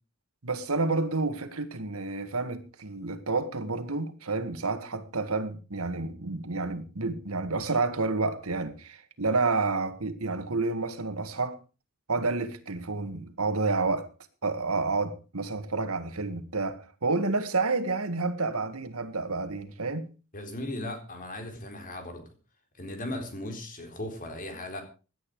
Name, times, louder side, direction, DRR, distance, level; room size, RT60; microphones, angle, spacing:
voice 1, 0.4-11.6 12.1-14.1 14.4-20.1, right 3 dB, 80° right, 1.9 m, -29 dB
voice 2, 20.3-22.3 22.8-24.8, left 1 dB, 40° left, 4.0 m, -37 dB
17.5 x 11.0 x 4.9 m
head